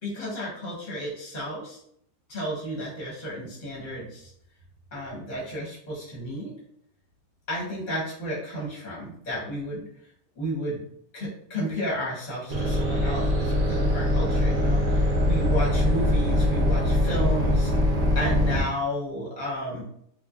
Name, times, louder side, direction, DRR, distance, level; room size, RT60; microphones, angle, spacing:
voice 1, 0.0-1.8 2.3-4.3 4.9-6.5 7.5-9.8 10.3-10.8 11.1-17.7 18.1-19.8, equal, 35° left, -5 dB, 0.8 m, -32 dB
sound 1, 12.5-18.6, left 1 dB, 65° right, 0.5 m, -23 dB
3.2 x 2.3 x 2.4 m, 0.67 s
omnidirectional pair, 1.8 m